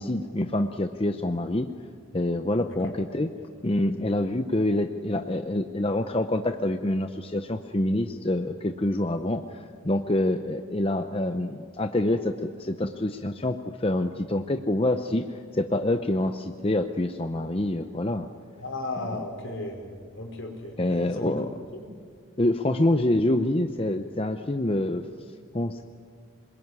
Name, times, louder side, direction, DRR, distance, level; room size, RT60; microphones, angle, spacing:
voice 1, 0.0-1.7 2.1-3.3 3.6-18.3 20.8-21.5 22.4-25.1 25.5-25.8, left 1 dB, 25° left, 7 dB, 0.7 m, -26 dB
voice 2, 18.6-21.4 21.7-21.9, left 2 dB, 65° left, 2 dB, 5.1 m, -35 dB
26.5 x 21.5 x 9.7 m, 2.1 s
head